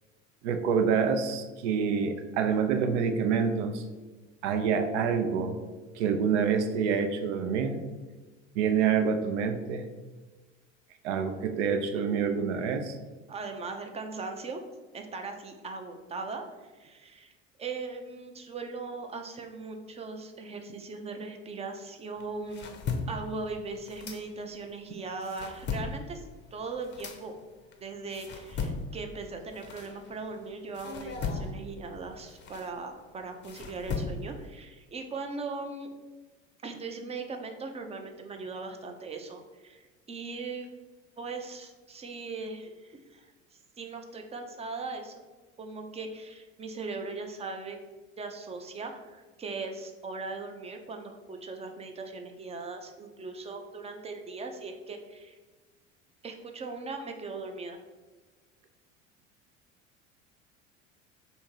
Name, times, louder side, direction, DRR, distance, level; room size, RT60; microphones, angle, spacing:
voice 1, 0.4-3.8 4.4-5.6 6.0-7.8 8.6-9.8 11.0-12.9, right 6 dB, 65° right, 7 dB, 0.6 m, -27 dB
voice 2, 13.3-14.6 14.9-22.8 23.1-27.3 27.8-35.9 36.6-40.7 41.2-45.2 45.6-47.8 48.2-55.4 56.2-57.8, right 3 dB, 15° right, 5 dB, 0.5 m, -39 dB
sound 1, 22.2-24.7 25.1-30.4 30.7-34.5, left 4 dB, 30° left, 0.6 m, -37 dB
3.5 x 2.8 x 4.5 m, 1.3 s
figure-of-eight pair, 70°, 38 cm